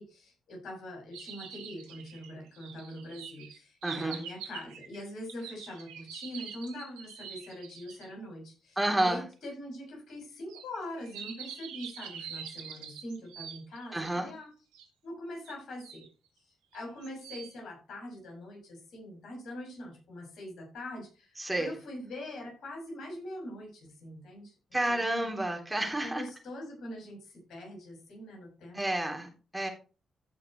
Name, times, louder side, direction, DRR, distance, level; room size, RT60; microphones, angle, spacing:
voice 1, 0.0-14.5 15.0-16.1 16.4-25.3 26.0-28.8, left 1 dB, 65° left, -1 dB, 6.3 m, -43 dB
sound 1, 1.1-8.1 9.0-9.1 10.5-14.2 14.7-14.9 15.5-16.1 16.7-17.6, right 8 dB, 85° right, 1.4 m, -45 dB
voice 2, 3.8-4.2 8.8-9.2 13.9-14.3 21.4-21.7 24.7-26.2 28.7-29.7, right 1 dB, 15° right, 2 dB, 3.3 m, -30 dB
15.5 x 5.7 x 3.2 m, 0.34 s
hypercardioid pair, 40°, 0 cm